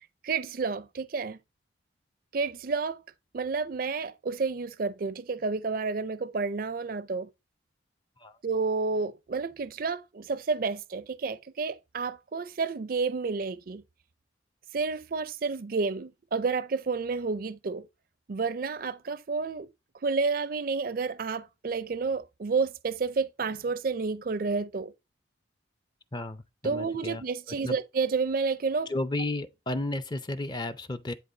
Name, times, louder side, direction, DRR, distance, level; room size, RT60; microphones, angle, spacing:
voice 1, 0.2-1.4 2.3-3.0 3.3-7.3 8.4-13.8 14.7-17.9 18.3-19.7 20.0-24.9 26.6-28.9, right 4 dB, 50° right, 0.4 m, -30 dB
voice 2, 26.1-27.2 27.6-27.8 28.9-31.1, left 2 dB, 20° left, 0.5 m, -33 dB
10.5 x 3.6 x 3.8 m
head